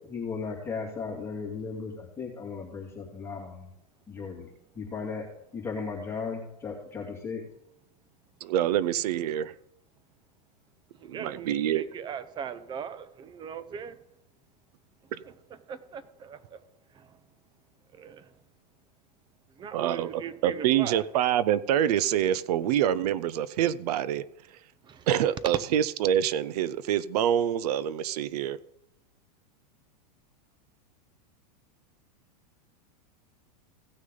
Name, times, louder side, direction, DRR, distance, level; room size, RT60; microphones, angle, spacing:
voice 1, 0.0-3.7 4.1-4.5 4.7-5.3 5.5-7.4, left 5 dB, 10° left, 2.4 m, -36 dB
voice 2, 8.4-9.5 11.1-11.8 15.1-15.2 19.7-24.2 25.1-28.6, right 10 dB, 70° right, 0.6 m, -26 dB
voice 3, 11.1-13.9 15.7-16.6 18.0-18.2 19.6-21.0 24.8-25.0, right 7 dB, 20° right, 0.7 m, -39 dB
16.5 x 6.3 x 3.9 m
supercardioid pair, 140°, 21 cm